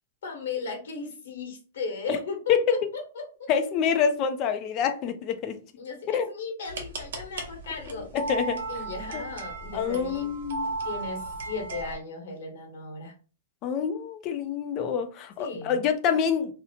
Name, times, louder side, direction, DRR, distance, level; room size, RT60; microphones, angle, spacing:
voice 1, 0.2-3.5 5.8-8.1 8.7-10.3 10.8-13.1 15.4-15.8, left 4 dB, 75° left, 1.1 m, -36 dB
voice 2, 3.5-5.6 6.1-6.3 7.9-8.6 9.1-9.2 9.7-10.7 13.6-16.5, left 7 dB, 30° left, 0.4 m, -26 dB
sound 1, 6.6-12.0, right 3 dB, 75° right, 0.8 m, -35 dB
2.7 x 2.0 x 2.8 m
supercardioid pair, 165°, 0 cm